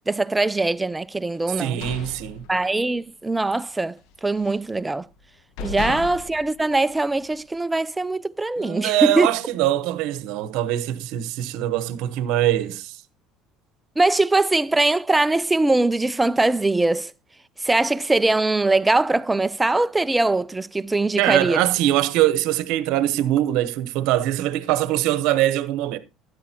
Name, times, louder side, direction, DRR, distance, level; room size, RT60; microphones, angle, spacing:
voice 1, 0.1-1.8 2.5-5.1 5.6-9.3 14.0-17.1 17.6-21.6, right 2 dB, 15° right, 0.5 m, -21 dB
sound 1, 1.5-3.0 3.4-3.6 4.0-4.7 5.2-5.3 5.6-7.4, left 6 dB, 70° left, 1.0 m, -36 dB
voice 2, 1.6-2.4 5.6-5.7 8.6-13.0 21.2-26.0, right 14 dB, 70° right, 0.9 m, -22 dB
12.5 x 9.7 x 2.8 m
supercardioid pair, 90°, 0 cm